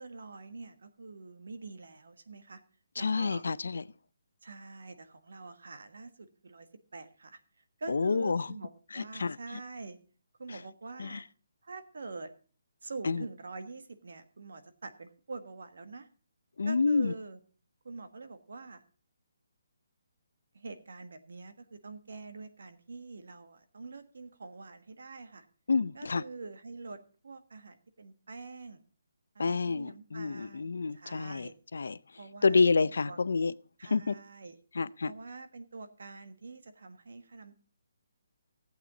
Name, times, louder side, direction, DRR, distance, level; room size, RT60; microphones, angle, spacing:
voice 1, 0.0-2.6 3.0-3.4 4.4-7.4 7.8-10.0 10.4-11.2 11.6-12.3 12.8-16.1 16.6-17.4 17.8-18.8 20.5-25.5 25.9-27.0 27.2-28.8 29.3-31.5 32.1-33.2 33.8-34.6 35.0-37.6, right 3 dB, 65° right, 1.5 m, -45 dB
voice 2, 3.0-3.8 7.9-8.5 8.9-9.4 10.5-10.6 11.0-11.2 13.0-13.3 16.6-17.1 25.7-26.2 29.4-32.0 32.4-33.5 33.9-34.1 34.7-35.1, left 4 dB, 75° left, 0.5 m, -28 dB
15.5 x 8.2 x 3.9 m
hypercardioid pair, 175°, 0 cm